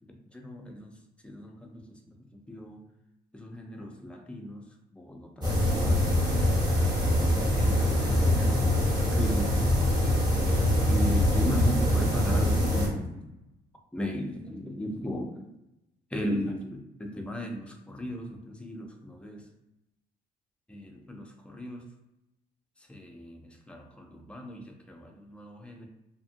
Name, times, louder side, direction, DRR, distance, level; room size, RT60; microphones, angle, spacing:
voice 1, 0.1-1.0 1.2-2.8 3.3-6.1 7.3-9.6 10.9-13.3 13.9-15.5 16.1-19.5 20.7-21.9 22.8-25.9, equal, 5° left, 2 dB, 0.4 m, -37 dB
sound 1, 5.4-12.9, left 1 dB, 25° right, 1.1 m, -24 dB
2.7 x 2.5 x 2.5 m, 0.91 s
cardioid pair, 110°, 17 cm